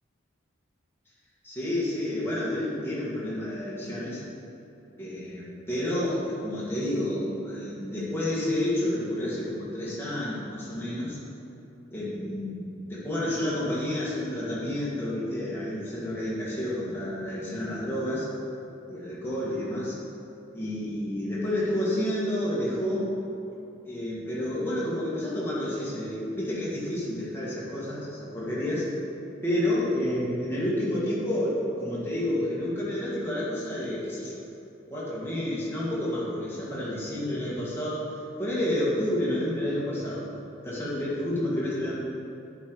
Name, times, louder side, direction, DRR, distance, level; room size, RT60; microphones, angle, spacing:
voice 1, 1.4-4.2 5.0-11.2 11.9-18.3 18.9-20.0 20.5-23.1 23.8-28.9 29.4-34.4 34.9-38.1 38.4-40.3 40.6-42.0, left 1 dB, 10° left, -8 dB, 2.0 m, -30 dB
10.5 x 5.3 x 4.8 m, 2.9 s
head